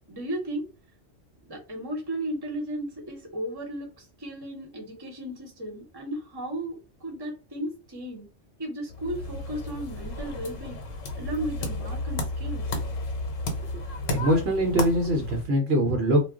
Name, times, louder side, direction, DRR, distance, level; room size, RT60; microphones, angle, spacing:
voice 1, 0.1-0.7 1.5-8.3 8.6-10.8 11.2-12.8, right 1 dB, 20° right, 0.9 m, -35 dB
sound 1, 8.9-15.4, left 2 dB, 85° left, 1.1 m, -33 dB
voice 2, 14.1-16.2, equal, 60° right, 0.9 m, -23 dB
2.2 x 2.2 x 3.5 m
omnidirectional pair, 1.3 m